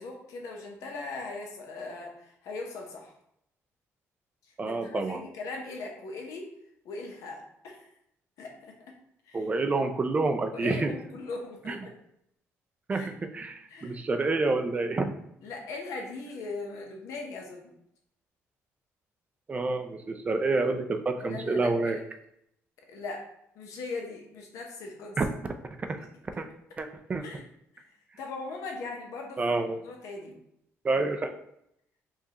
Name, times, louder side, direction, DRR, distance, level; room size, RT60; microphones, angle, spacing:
voice 1, 0.0-3.1 4.4-6.5 6.8-7.9 8.4-8.8 9.3-9.4 10.5-11.9 12.9-13.1 13.7-14.0 15.4-17.7 21.3-22.0 22.9-23.3 23.5-25.2 26.0-26.1 27.2-27.4 27.7-30.4, left 3 dB, 85° left, 1 dB, 0.8 m, -39 dB
voice 2, 4.6-5.2 9.3-10.9 11.7-11.8 12.9-15.1 19.5-22.0 25.2-25.3 26.4-26.5 26.8-27.2 29.4-29.8 30.8-31.3, right 3 dB, 25° right, 6 dB, 0.4 m, -28 dB
4.7 x 2.4 x 2.9 m, 0.75 s
cardioid pair, 125°, 5 cm